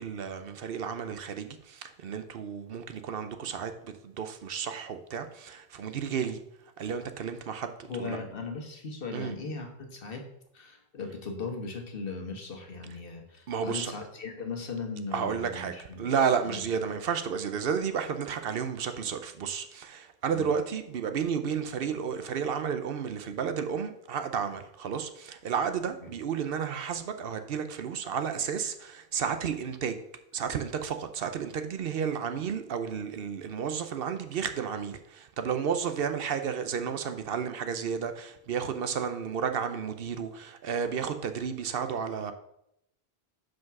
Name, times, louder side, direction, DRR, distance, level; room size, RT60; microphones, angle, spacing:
voice 1, 0.0-6.4 6.8-8.2 9.1-9.3 13.5-13.9 15.1-30.0 30.3-42.3, right 7 dB, 70° right, 0.8 m, -32 dB
voice 2, 7.9-10.3 10.5-16.0 16.4-16.6 20.3-20.5 26.0-26.1, left 4 dB, 60° left, 1.4 m, -38 dB
5.9 x 5.2 x 5.8 m
omnidirectional pair, 1.1 m